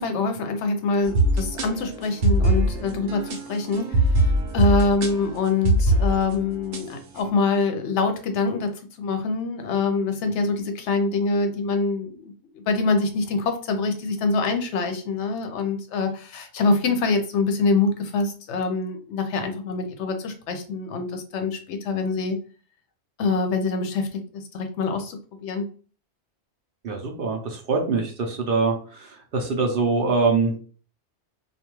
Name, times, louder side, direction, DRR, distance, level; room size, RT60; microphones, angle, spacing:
voice 1, 0.0-8.7 9.0-22.4 23.2-25.6, left 4 dB, 80° left, 6 dB, 0.9 m, -25 dB
sound 1, 1.0-6.8, right 1 dB, 80° right, 0.9 m, -22 dB
voice 2, 26.8-30.6, right 4 dB, 60° right, 2 dB, 0.7 m, -24 dB
2.4 x 2.2 x 3.0 m, 0.40 s
omnidirectional pair, 1.2 m